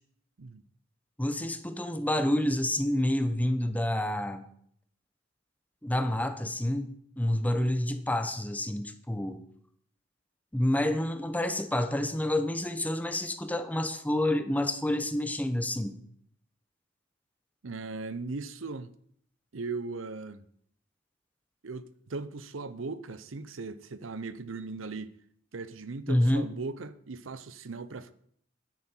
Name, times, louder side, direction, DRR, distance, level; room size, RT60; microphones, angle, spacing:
voice 1, 1.2-4.4 5.8-9.4 10.5-16.0 26.1-26.5, left 1 dB, 10° left, 0.9 m, -28 dB
voice 2, 17.6-18.9 19.5-20.5 21.6-25.1 25.5-28.1, right 3 dB, 85° right, 0.7 m, -38 dB
12.5 x 10.0 x 4.5 m
head